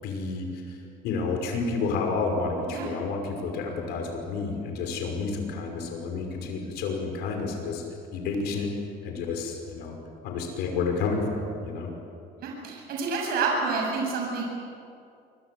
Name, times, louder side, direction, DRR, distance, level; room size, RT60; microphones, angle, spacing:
voice 1, 0.0-0.8 1.0-7.8 8.1-8.7 9.0-10.0 10.2-11.9, left 4 dB, 80° left, 3 dB, 5.8 m, -30 dB
voice 2, 12.4-14.4, right 4 dB, 65° right, -1 dB, 7.6 m, -28 dB
28.0 x 23.5 x 8.1 m, 2.4 s
cardioid pair, 130°, 17 cm